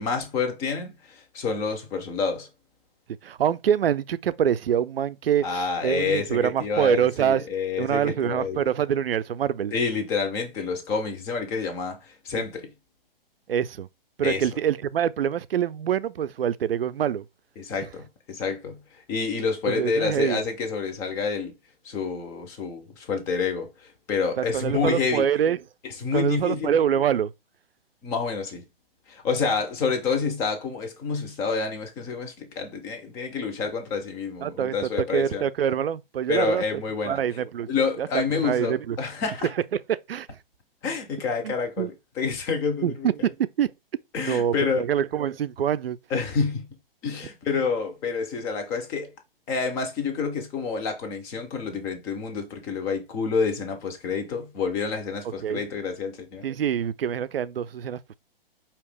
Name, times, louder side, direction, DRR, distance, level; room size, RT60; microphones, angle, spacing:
voice 1, 0.0-2.5 5.4-8.7 9.7-12.7 14.2-14.5 17.6-18.0 18.3-18.8 19.1-21.5 21.8-25.3 25.8-26.7 28.0-28.6 29.1-35.4 36.3-37.2 37.7-39.5 40.8-43.1 44.1-44.8 46.1-46.7 47.0-49.1 49.5-56.4, left 5 dB, 10° left, 0.4 m, -28 dB
voice 2, 3.2-7.4 7.8-9.7 12.3-12.4 13.5-13.9 14.2-17.2 19.7-20.4 24.4-25.6 26.1-27.3 34.4-34.8 35.1-36.6 37.1-37.7 38.0-39.0 39.7-40.3 41.4-41.9 42.8-43.7 44.2-46.0 55.4-55.6 56.4-58.1, right 9 dB, 75° right, 0.4 m, -25 dB
4.7 x 2.9 x 3.4 m
figure-of-eight pair, 125°, 29 cm